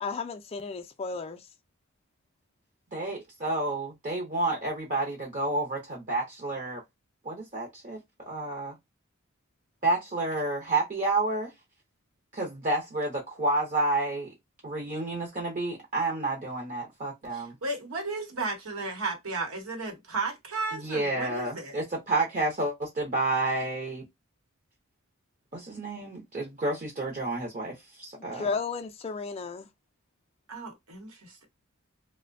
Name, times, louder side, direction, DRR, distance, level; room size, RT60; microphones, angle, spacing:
voice 1, 0.0-1.4 28.2-29.7, left 4 dB, 30° left, 0.3 m, -34 dB
voice 2, 2.9-6.8 7.2-8.0 8.3-8.7 9.8-11.5 12.3-14.3 14.6-17.5 20.7-24.0 25.5-28.5, right 2 dB, 35° right, 0.6 m, -30 dB
voice 3, 17.3-21.8 30.5-31.5, right 3 dB, 80° right, 0.9 m, -34 dB
2.6 x 2.1 x 2.5 m
head